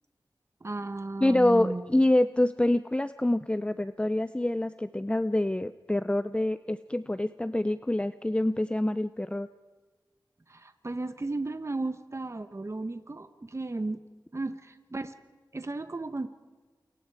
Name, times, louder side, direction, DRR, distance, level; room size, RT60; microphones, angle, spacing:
voice 1, 0.6-1.9 10.5-14.0 14.3-15.1 15.5-16.3, right 2 dB, 40° right, 9 dB, 1.2 m, -34 dB
voice 2, 1.2-9.5, left 1 dB, 15° left, 13 dB, 0.6 m, -26 dB
28.0 x 22.0 x 4.8 m, 1.4 s
cardioid pair, 45°, 8 cm